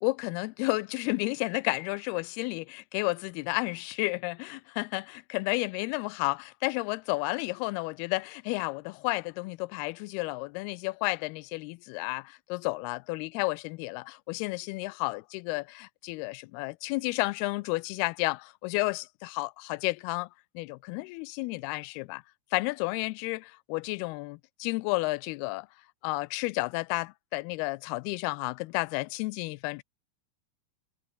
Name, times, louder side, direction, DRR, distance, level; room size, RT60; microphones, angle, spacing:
voice 1, 0.0-20.3 20.6-22.2 22.5-25.7 26.0-29.8, left 24 dB, 85° left, 2.5 m, -32 dB
omnidirectional pair, 4.5 m